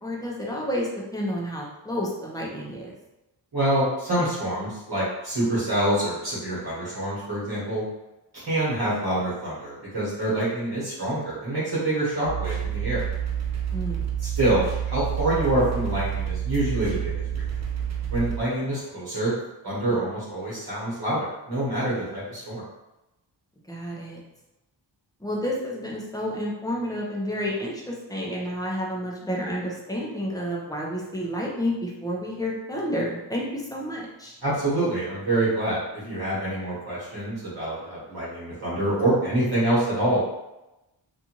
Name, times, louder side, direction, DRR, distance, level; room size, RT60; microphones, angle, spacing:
voice 1, 0.0-2.9 13.7-14.1 23.7-24.2 25.2-34.4, equal, 10° left, -3 dB, 0.7 m, -30 dB
voice 2, 3.5-7.8 8.3-13.0 14.2-17.4 18.1-19.3 19.6-22.6 34.4-40.2, right 1 dB, 55° right, -8 dB, 1.2 m, -26 dB
sound 1, 12.2-18.4, right 9 dB, 35° right, 0.6 m, -29 dB
2.5 x 2.5 x 2.9 m, 0.97 s
cardioid pair, 65°, 46 cm